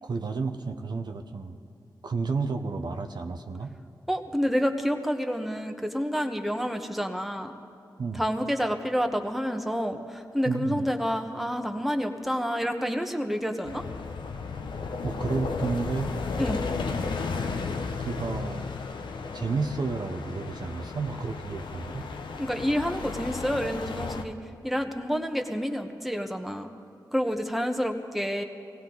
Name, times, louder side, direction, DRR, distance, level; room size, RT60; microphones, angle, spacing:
voice 1, 0.0-1.6 2.0-3.7 8.0-8.2 10.4-10.9 15.0-16.1 18.0-18.7 19.3-22.1, right 4 dB, 65° right, 5 dB, 0.8 m, -31 dB
voice 2, 4.1-7.5 8.1-13.8 16.4-16.6 22.4-24.4 24.6-26.7 27.1-28.4, equal, ahead, 4 dB, 1.2 m, -28 dB
sound 1, 13.6-24.2, left 4 dB, 85° left, 0.7 m, -34 dB
18.0 x 16.5 x 3.9 m, 2.4 s
cardioid pair, 45°, 8 cm